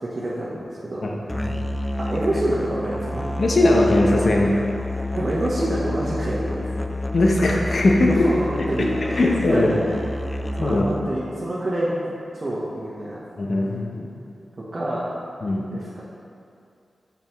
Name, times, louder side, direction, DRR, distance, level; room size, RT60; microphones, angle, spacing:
voice 1, 0.0-1.4 2.0-3.3 5.1-6.9 8.1-9.2 9.5-9.9 10.6-13.2 14.7-15.1 15.7-16.0, right 1 dB, 45° right, -8 dB, 1.1 m, -27 dB
Musical instrument, 1.3-11.1, left 1 dB, 15° left, 0.4 m, -29 dB
voice 2, 3.4-4.6 7.1-8.3 8.8-8.9 9.2-9.7 10.6-10.8 13.4-14.1 15.4-15.7, left 2 dB, 65° left, 0 dB, 0.8 m, -19 dB
6.9 x 5.4 x 3.1 m, 2.5 s
cardioid pair, 50°, 0 cm